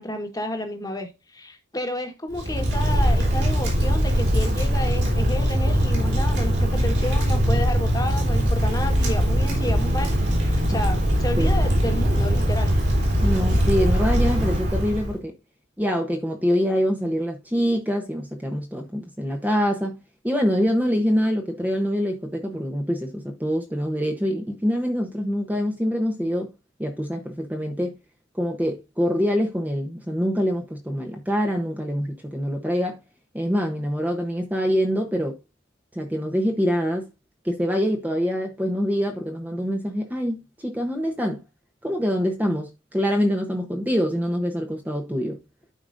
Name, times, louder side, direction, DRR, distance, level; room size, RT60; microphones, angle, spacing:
voice 1, 0.0-10.1 10.4-12.8, left 1 dB, 20° left, 1.3 m, -31 dB
Wind, 2.3-15.2, equal, 60° right, 3.4 m, -21 dB
voice 2, 11.4-11.7 13.2-15.3 15.8-20.0 20.2-26.5 26.8-27.9 28.3-33.0 33.3-35.4 35.9-37.0 37.4-41.4 41.8-45.4, equal, 10° right, 0.8 m, -25 dB
12.0 x 4.9 x 2.6 m
head